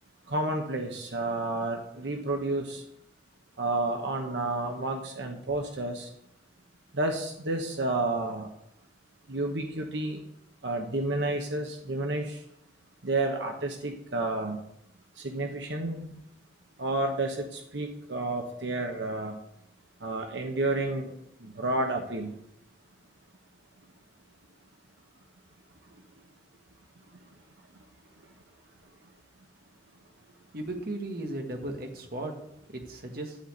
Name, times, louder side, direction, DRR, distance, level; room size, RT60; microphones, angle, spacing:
voice 1, 0.3-2.8 3.6-6.1 6.9-8.5 9.3-10.2 10.6-12.4 13.0-14.6 15.2-16.2 16.8-19.3 20.0-21.1 21.4-22.3, right 2 dB, 85° right, 3 dB, 1.1 m, -30 dB
voice 2, 30.5-32.3 32.7-33.4, right 1 dB, 55° right, 3 dB, 1.5 m, -36 dB
11.5 x 4.3 x 8.0 m, 0.76 s
head